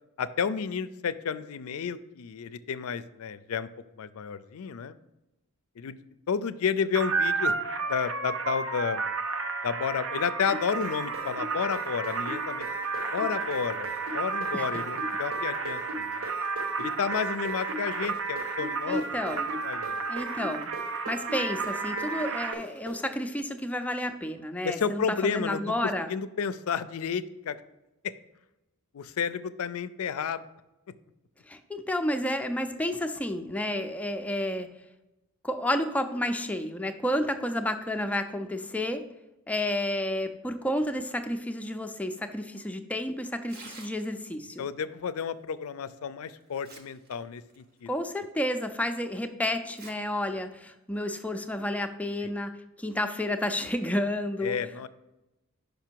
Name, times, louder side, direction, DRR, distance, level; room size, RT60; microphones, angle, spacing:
voice 1, 0.2-3.7 4.0-5.0 5.8-6.0 6.3-7.5 7.8-9.0 9.6-12.7 13.1-16.2 16.8-19.0 19.3-20.1 24.6-27.6 28.9-30.4 44.6-47.9 52.2-52.3 54.4-54.9, left 6 dB, 70° left, 15 dB, 0.4 m, -31 dB
sound 1, 6.9-22.5, right 4 dB, 60° right, 0.6 m, -32 dB
sound 2, 10.5-18.1 18.4-23.0, right 1 dB, 80° right, 2.2 m, -39 dB
voice 2, 18.9-19.5 20.1-20.7 21.1-26.1 31.5-34.7 35.4-39.0 39.5-44.7 47.9-52.5 52.8-54.6, left 1 dB, 5° left, 6 dB, 0.4 m, -31 dB
Tearing, 43.4-44.4 45.8-45.9 46.4-47.1 47.5-47.6 48.3-48.4 49.6-49.9 50.3-50.4 51.3-51.5, right 3 dB, 45° right, 1.0 m, -48 dB
5.9 x 5.2 x 4.5 m, 0.97 s
head